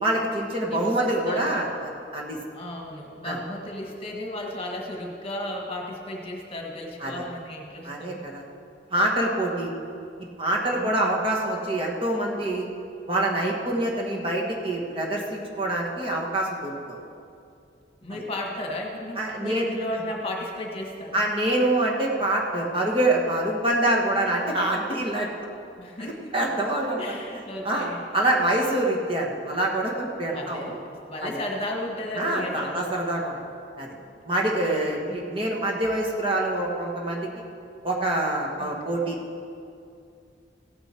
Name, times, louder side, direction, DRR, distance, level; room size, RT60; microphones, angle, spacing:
voice 1, 0.0-2.4 3.2-3.4 7.0-7.2 7.8-8.4 8.9-9.7 10.4-12.7 13.1-17.0 19.2-19.6 21.1-25.3 26.0-27.0 27.6-30.8 31.2-31.4 32.2-33.3 33.8-33.9 34.2-37.3 37.8-39.2, right 1 dB, 30° right, -2 dB, 1.4 m, -25 dB
voice 2, 0.7-1.7 2.5-8.3 10.7-11.2 18.0-21.2 25.8-26.3 27.0-28.1 30.3-30.8 31.1-32.9 33.9-34.0 34.3-34.6 35.1-35.2 38.6-39.0, left 1 dB, 30° left, 0 dB, 1.6 m, -34 dB
16.0 x 9.6 x 4.4 m, 2.5 s
head